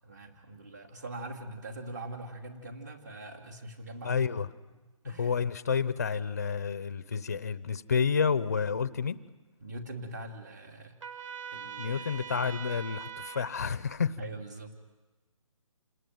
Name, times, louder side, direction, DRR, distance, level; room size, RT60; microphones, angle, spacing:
voice 1, 0.0-4.3 5.0-5.3 9.6-11.0 11.5-12.5 14.2-14.7, right 2 dB, 30° right, 5 dB, 2.7 m, -42 dB
voice 2, 4.0-4.5 5.2-9.2 11.8-14.2, left 6 dB, 30° left, 15 dB, 0.8 m, -30 dB
Trumpet, 11.0-13.5, right 7 dB, 65° right, 4.5 m, -42 dB
28.0 x 19.5 x 9.4 m, 1.2 s
hypercardioid pair, 180°, 17 cm